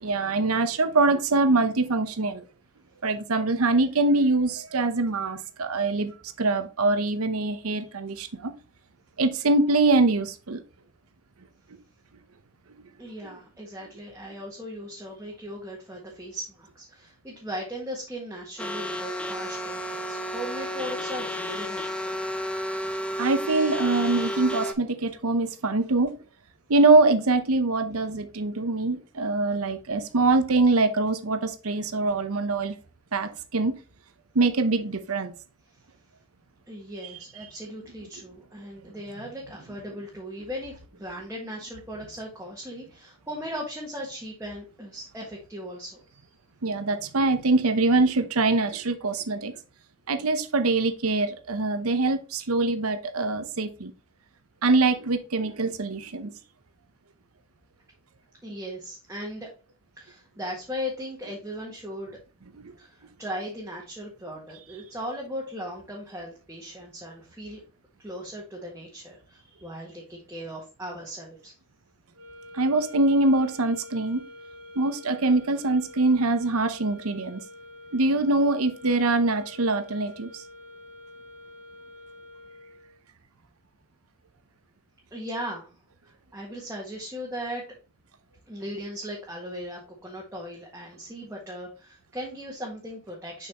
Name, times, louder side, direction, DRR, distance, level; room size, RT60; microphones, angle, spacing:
voice 1, 0.0-2.4 3.0-8.5 9.2-10.6 23.2-26.1 26.7-32.7 33.1-33.7 34.3-35.3 46.6-49.5 50.1-53.9 54.6-56.3 62.6-62.7 72.5-74.2 74.8-77.4 77.9-80.4, right 3 dB, 90° right, 0.8 m, -23 dB
voice 2, 13.0-22.2 36.7-46.2 58.4-59.5 60.0-62.2 62.8-67.6 68.0-71.5 85.1-85.7 86.0-87.7 88.5-93.5, equal, 10° right, 1.6 m, -38 dB
sound 1, 18.6-24.7, equal, 5° left, 0.7 m, -32 dB
sound 2, 72.1-83.0, left 1 dB, 75° right, 2.8 m, -47 dB
6.8 x 5.6 x 2.9 m
head